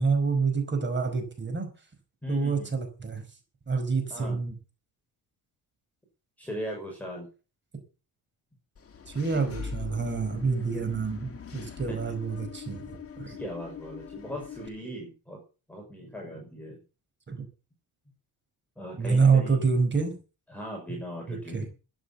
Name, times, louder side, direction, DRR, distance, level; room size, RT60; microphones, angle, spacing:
voice 1, 0.0-1.7 2.3-3.2 3.7-4.5 9.1-13.3 17.3-17.5 19.0-20.1 21.3-21.7, right 5 dB, 30° right, 6 dB, 5.0 m, -27 dB
voice 2, 2.2-2.7 4.1-4.4 6.4-7.3 11.9-12.1 13.2-15.4 15.7-16.8 18.8-19.6 20.5-21.7, equal, 5° left, -1 dB, 5.7 m, -38 dB
Engine / Mechanisms, 8.8-14.7, left 6 dB, 35° left, 2.1 m, -42 dB
13.0 x 11.0 x 6.9 m, 0.34 s
wide cardioid pair, 175°, 38 cm